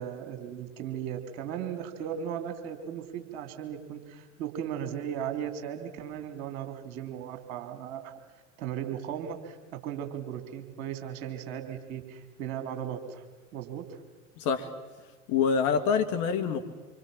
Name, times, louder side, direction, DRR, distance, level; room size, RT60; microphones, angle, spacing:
voice 1, 0.0-8.1 8.6-13.2 13.5-14.0, right 9 dB, 55° right, 7 dB, 3.4 m, -37 dB
voice 2, 14.4-14.7 15.3-16.6, left 6 dB, 45° left, 7 dB, 2.0 m, -26 dB
26.0 x 25.5 x 7.4 m, 1.3 s
figure-of-eight pair, 80°, 41 cm